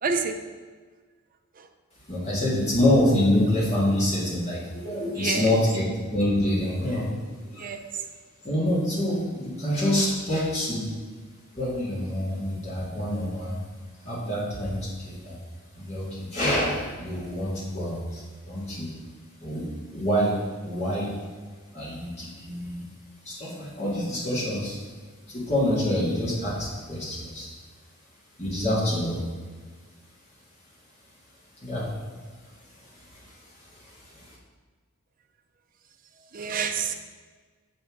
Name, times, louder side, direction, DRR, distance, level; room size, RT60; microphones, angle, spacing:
voice 1, 0.0-0.4 1.6-1.7 5.0-5.6 7.5-8.1 36.3-36.9, right 5 dB, 40° right, 6 dB, 0.5 m, -29 dB
voice 2, 2.1-5.8 6.1-7.1 7.5-7.7 8.4-10.9 11.5-13.6 14.0-15.4 15.7-18.9 19.4-19.7 19.9-20.3 20.6-21.1 21.7-22.9 23.3-24.8 25.3-27.5 28.4-29.2 31.6-31.9 33.1-33.2 34.1-34.2, left 1 dB, 30° left, -7 dB, 1.9 m, -26 dB
7.0 x 5.2 x 3.6 m, 1.5 s
head